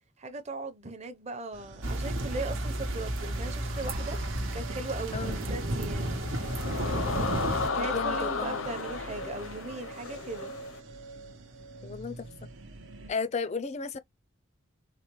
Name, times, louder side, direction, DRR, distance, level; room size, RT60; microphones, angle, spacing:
voice 1, 0.2-4.2 4.5-6.2 7.6-10.5, right 3 dB, 35° right, 0.7 m, -38 dB
sound 1, 1.5-13.1, right 3 dB, 70° right, 0.8 m, -45 dB
sound 2, 1.8-7.7, right 1 dB, 85° right, 1.0 m, -32 dB
sound 3, 6.0-10.8, left 4 dB, 85° left, 0.7 m, -34 dB
voice 2, 7.8-8.7 11.8-12.3 13.1-14.0, left 4 dB, 35° left, 0.4 m, -34 dB
4.1 x 2.1 x 3.0 m
head